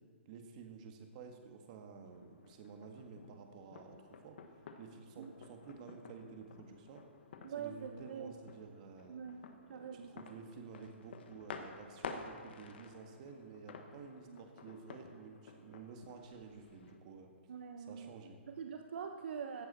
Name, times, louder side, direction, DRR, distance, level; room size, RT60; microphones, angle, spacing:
voice 1, 0.2-4.4 4.8-7.0 7.6-9.2 9.7-17.3 17.8-18.4, right 5 dB, 35° right, 4 dB, 1.5 m, -52 dB
sound 1, 2.1-17.0, left 5 dB, 55° left, 1.2 m, -52 dB
voice 2, 7.4-8.3 9.1-10.2 14.3-14.4 17.5-18.1 18.5-19.7, right 7 dB, 60° right, 5 dB, 0.8 m, -44 dB
15.5 x 10.0 x 4.2 m, 2.2 s
hypercardioid pair, 155°, 7 cm